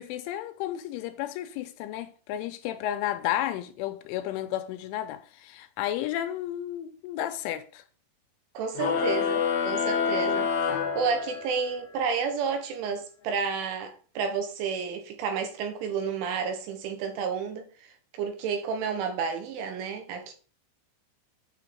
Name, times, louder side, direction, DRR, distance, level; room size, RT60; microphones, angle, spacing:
voice 1, 0.0-7.8, left 12 dB, 85° left, 3.1 m, -32 dB
voice 2, 8.6-20.3, right 6 dB, 75° right, 3.7 m, -31 dB
sound 1, 8.7-11.7, left 6 dB, 60° left, 2.8 m, -27 dB
9.0 x 4.9 x 5.7 m
omnidirectional pair, 5.8 m